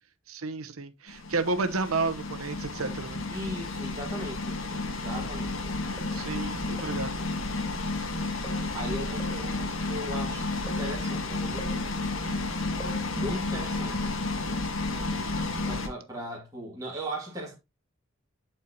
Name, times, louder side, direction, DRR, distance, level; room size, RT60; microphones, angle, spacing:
voice 1, 0.3-3.2 6.1-7.1, right 3 dB, 85° right, 0.9 m, -31 dB
sound 1, 1.1-15.9, left 2 dB, 70° left, 1.6 m, -32 dB
voice 2, 3.3-5.7 8.7-12.0 13.1-14.1 15.7-17.6, right 1 dB, 15° right, 2.2 m, -38 dB
sound 2, 6.0-6.3 6.8-7.1 8.4-8.8 9.2-9.5 10.7-11.0 11.6-11.9 12.8-13.1 15.4-15.6 16.2-16.4, right 1 dB, 15° left, 3.3 m, -44 dB
11.0 x 4.6 x 2.9 m
head